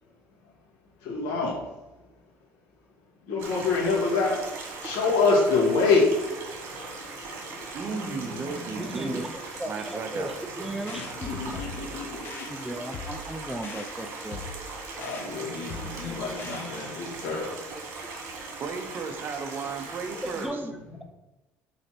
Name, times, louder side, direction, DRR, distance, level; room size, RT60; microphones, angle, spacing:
voice 1, 1.0-1.6 3.3-4.4 4.8-6.2 7.5-8.4 8.9-9.1 10.7-12.2 15.0-17.4, left 4 dB, 85° left, -3 dB, 2.1 m, -26 dB
Stream, 3.4-20.5, right 3 dB, 60° right, 1.7 m, -39 dB
voice 2, 7.7-9.3 9.6-10.4 18.6-20.7, right 5 dB, 40° right, 7 dB, 0.7 m, -35 dB
voice 3, 8.8-11.3 12.5-14.4 20.3-21.0, right 1 dB, 5° right, 6 dB, 0.5 m, -36 dB
sound 1, 10.9-17.1, left 4 dB, 50° left, 0.8 m, -42 dB
5.6 x 4.2 x 4.4 m, 1.0 s
cardioid pair, 125°, 5 cm